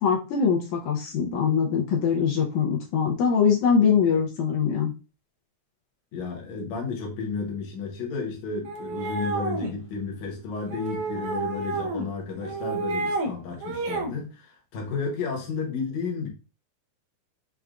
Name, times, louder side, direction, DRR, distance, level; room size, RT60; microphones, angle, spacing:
voice 1, 0.0-4.9, left 6 dB, 85° left, 2.1 m, -23 dB
voice 2, 6.1-16.3, left 4 dB, 70° left, 2.2 m, -32 dB
sound 1, 8.6-9.7 10.7-12.1 12.4-13.3 13.6-14.1, right 3 dB, 70° right, 1.4 m, -30 dB
6.4 x 2.3 x 2.4 m
omnidirectional pair, 3.4 m